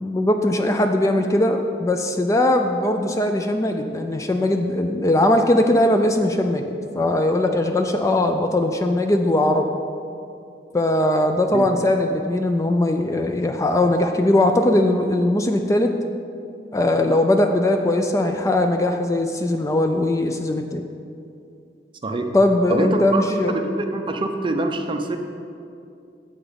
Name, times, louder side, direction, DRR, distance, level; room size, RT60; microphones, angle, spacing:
voice 1, 0.0-9.7 10.7-15.9 16.7-20.8 22.3-23.5, left 1 dB, 20° left, 5 dB, 0.3 m, -20 dB
voice 2, 22.7-25.2, right 2 dB, 30° right, 5 dB, 0.5 m, -25 dB
7.8 x 6.0 x 5.1 m, 2.5 s
head